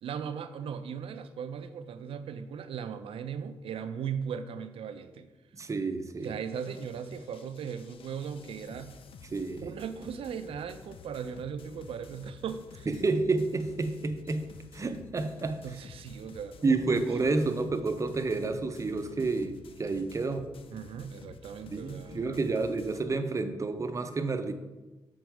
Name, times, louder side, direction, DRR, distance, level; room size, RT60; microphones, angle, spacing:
voice 1, 0.0-5.3 6.2-8.9 9.6-12.9 15.6-17.1 20.7-22.4, right 7 dB, 85° right, 11 dB, 0.5 m, -38 dB
voice 2, 5.5-6.4 9.3-9.7 12.9-14.5 14.7-15.6 16.6-20.5 21.7-24.5, right 3 dB, 35° right, 8 dB, 0.6 m, -30 dB
sound 1, 6.4-23.0, left 5 dB, 70° left, 0.4 m, -51 dB
6.4 x 3.9 x 4.6 m, 1.1 s
cardioid pair, 80°, 9 cm